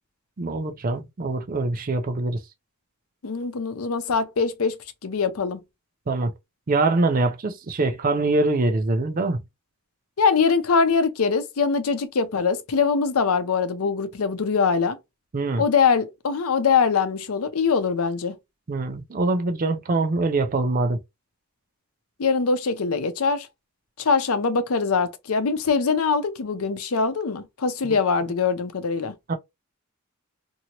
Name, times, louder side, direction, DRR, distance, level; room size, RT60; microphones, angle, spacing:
voice 1, 0.4-2.4 6.1-6.3 6.7-9.4 15.3-15.6 18.7-21.0 27.8-28.0 29.3-29.4, right 2 dB, 40° right, 0.5 m, -24 dB
voice 2, 3.2-4.8 5.0-5.6 10.2-15.0 15.6-18.3 22.2-23.5 24.0-29.1, left 5 dB, 85° left, 0.6 m, -23 dB
2.9 x 2.7 x 2.9 m
head